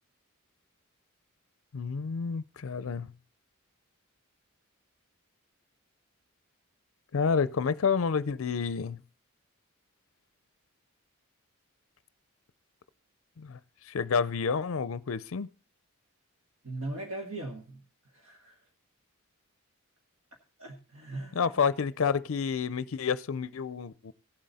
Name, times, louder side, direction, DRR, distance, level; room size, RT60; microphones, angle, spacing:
voice 1, 1.7-3.1 7.1-9.0 13.4-13.6 13.9-15.5 21.3-24.1, left 6 dB, 65° left, 0.5 m, -29 dB
voice 2, 16.6-17.8 18.1-18.5 20.6-21.6, right 2 dB, 70° right, 1.8 m, -39 dB
16.5 x 7.6 x 4.1 m
head